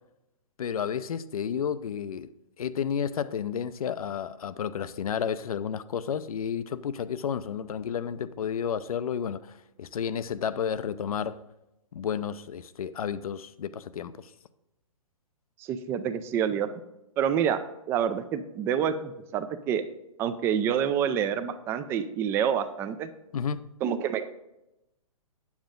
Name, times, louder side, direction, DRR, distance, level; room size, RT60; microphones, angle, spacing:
voice 1, 0.6-2.3 2.6-11.4 11.9-14.3 23.3-23.7, left 8 dB, 75° left, 0.6 m, -31 dB
voice 2, 15.6-16.7 17.2-17.6 17.9-19.8 20.2-23.1 23.8-24.3, right 8 dB, 15° right, 0.3 m, -27 dB
9.1 x 7.2 x 3.7 m
hypercardioid pair, 145°, 19 cm